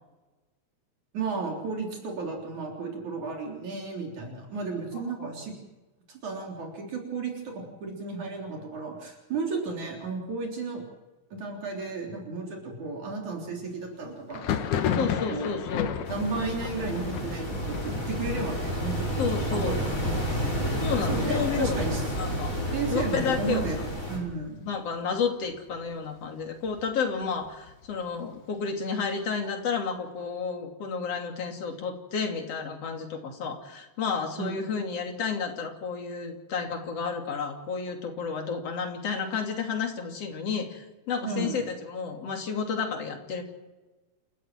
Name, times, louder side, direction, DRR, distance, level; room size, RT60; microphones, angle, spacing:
voice 1, 1.1-5.5 6.1-10.8 11.3-14.6 14.9-15.6 16.1-20.0 20.2-20.4 21.1-22.0 22.7-23.8 24.1-24.7 34.4-34.5 41.2-41.6, right 4 dB, 75° right, 0 dB, 5.1 m, -33 dB
voice 2, 4.9-5.4 15.0-16.0 19.2-19.8 20.8-21.9 22.2-23.9 24.7-43.4, left 5 dB, 55° left, 3 dB, 3.8 m, -31 dB
Thunder, 14.3-23.8 24.1-24.8 25.0-26.0 26.4-28.1, left 8 dB, 85° left, 2.9 m, -35 dB
sound 1, 16.0-24.2, equal, 25° left, 6.2 m, -30 dB
29.0 x 14.5 x 7.6 m, 1.1 s
omnidirectional pair, 3.4 m